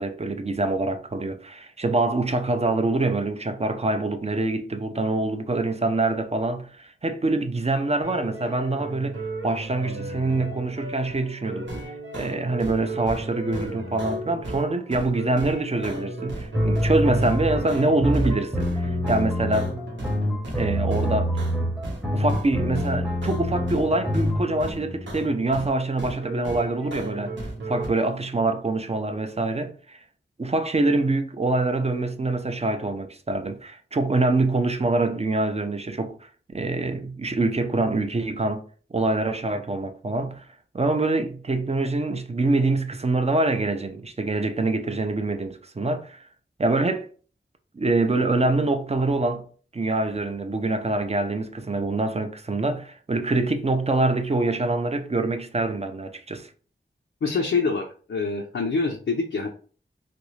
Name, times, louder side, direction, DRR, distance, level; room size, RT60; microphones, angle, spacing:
voice 1, 0.0-19.7 20.6-21.3 22.1-30.0 30.4-36.2 36.5-38.6 38.9-40.5 40.7-46.2 46.6-47.1 47.7-49.5 49.7-56.5, right 2 dB, 35° right, 0.5 m, -25 dB
sound 1, 8.0-22.0 22.3-25.7 26.0-27.9, right 1 dB, 75° right, 1.0 m, -35 dB
sound 2, 16.5-24.4, equal, 5° right, 0.8 m, -26 dB
voice 2, 57.2-59.5, left 4 dB, 80° left, 0.4 m, -25 dB
3.2 x 2.5 x 3.1 m
wide cardioid pair, 65°, 20 cm